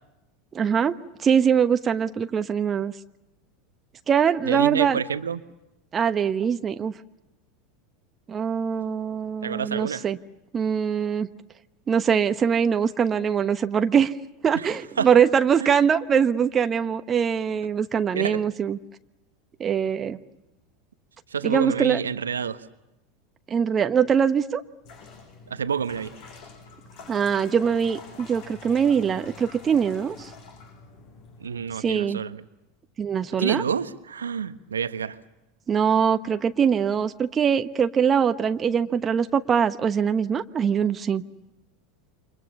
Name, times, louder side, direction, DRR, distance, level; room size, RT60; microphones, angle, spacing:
voice 1, 0.5-2.9 4.1-5.0 5.9-6.9 8.3-10.2 10.5-11.3 11.9-14.1 14.4-18.8 19.6-20.2 21.4-22.0 23.5-24.6 27.1-30.3 31.8-32.2 33.0-33.6 35.7-41.2, right 7 dB, 25° right, 1.1 m, -22 dB
voice 2, 4.4-5.4 9.4-10.0 14.5-14.7 15.0-15.1 15.6-15.8 18.1-18.4 21.3-22.7 25.5-26.1 31.4-32.4 33.4-35.2, right 7 dB, 75° right, 1.2 m, -28 dB
sound 1, 24.8-31.8, left 4 dB, 50° left, 7.9 m, -46 dB
29.0 x 26.5 x 7.0 m
figure-of-eight pair, 80°, 0 cm